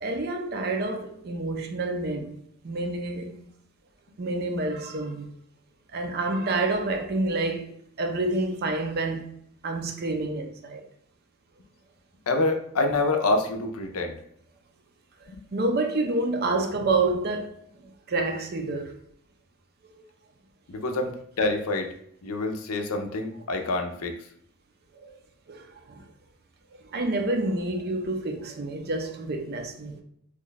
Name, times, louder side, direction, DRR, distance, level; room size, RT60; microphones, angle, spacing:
voice 1, 0.0-2.4 2.6-3.4 4.2-5.3 5.9-9.2 9.6-10.8 15.5-17.5 17.8-18.9 25.0-25.2 25.5-26.0 26.9-30.0, right 2 dB, 45° right, 0.5 m, -28 dB
voice 2, 12.3-14.1 20.7-21.1 21.4-21.9 22.2-24.1, left 2 dB, 80° left, 0.5 m, -26 dB
3.0 x 2.3 x 3.9 m
head